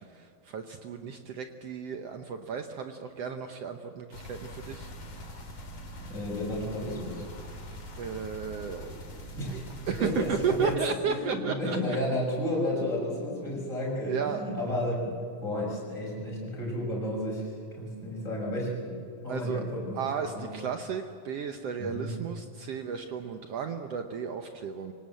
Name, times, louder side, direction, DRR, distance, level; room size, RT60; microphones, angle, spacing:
voice 1, 0.1-4.9 5.2-5.5 8.0-12.1 14.0-14.4 19.3-19.6 19.9-24.9, right 6 dB, 80° right, 6 dB, 1.4 m, -34 dB
sound 1, 4.1-10.8, equal, 45° left, 3.9 m, -43 dB
voice 2, 6.0-7.2 9.4-9.7 10.0-10.8 11.0-15.1 15.4-20.0 20.3-20.5 21.8-22.1, left 1 dB, 20° left, -3 dB, 6.8 m, -32 dB
25.0 x 18.5 x 7.8 m, 2.5 s
omnidirectional pair, 4.2 m